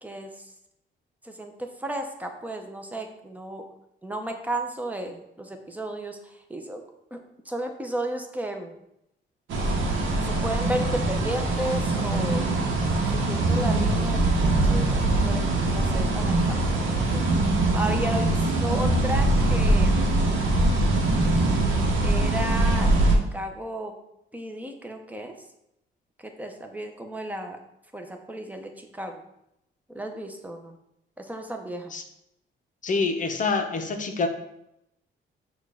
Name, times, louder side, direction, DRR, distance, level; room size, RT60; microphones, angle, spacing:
voice 1, 0.0-0.5 1.2-3.6 4.0-6.2 6.5-6.8 7.1-7.2 7.5-8.8 10.3-12.4 13.1-14.2 14.6-15.4 15.7-17.3 17.7-20.1 22.0-23.9 24.3-25.3 26.2-27.6 27.9-29.2 29.9-30.8 31.2-31.9, right 1 dB, 10° right, 4 dB, 0.6 m, -33 dB
sound 1, 9.5-23.2, right 2 dB, 75° right, 0.9 m, -23 dB
voice 2, 32.8-34.3, left 4 dB, 40° left, 5 dB, 0.6 m, -26 dB
6.3 x 2.4 x 3.4 m, 0.82 s
cardioid pair, 90°, 20 cm